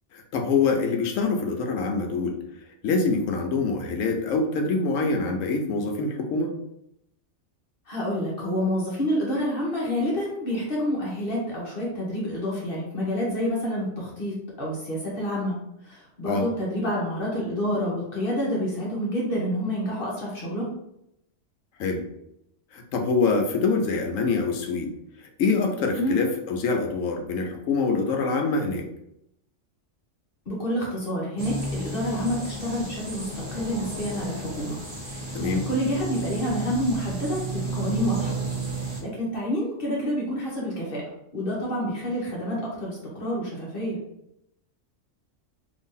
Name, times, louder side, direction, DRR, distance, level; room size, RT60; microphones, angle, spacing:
voice 1, 0.1-2.4 2.8-6.5 16.3-16.5 21.8-22.1 22.7-24.9 25.2-28.9 35.3-35.7, left 4 dB, 85° left, 4 dB, 1.0 m, -25 dB
voice 2, 7.9-15.6 15.8-20.7 26.0-26.2 30.5-34.8 35.0-38.4 38.8-41.0 41.3-44.0, equal, 50° left, -4 dB, 1.0 m, -28 dB
sound 1, 31.4-39.0, right 2 dB, 30° right, 0.6 m, -32 dB
2.8 x 2.6 x 3.7 m, 0.80 s
omnidirectional pair, 1.3 m